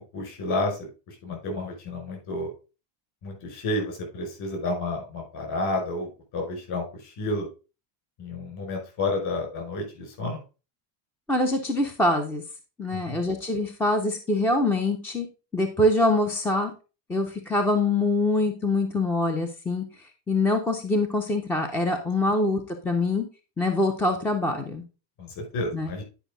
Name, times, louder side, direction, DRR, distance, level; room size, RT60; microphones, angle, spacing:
voice 1, 0.0-2.5 3.2-7.5 8.2-10.4 12.9-13.3 25.2-26.0, left 2 dB, 50° left, 2 dB, 5.4 m, -31 dB
voice 2, 11.3-12.4 12.8-15.3 15.5-16.7 17.1-19.8 20.3-23.3 23.6-24.8 25.7-25.9, left 2 dB, 5° left, 5 dB, 0.3 m, -24 dB
10.0 x 5.4 x 3.7 m, 0.32 s
cardioid pair, 170°, 49 cm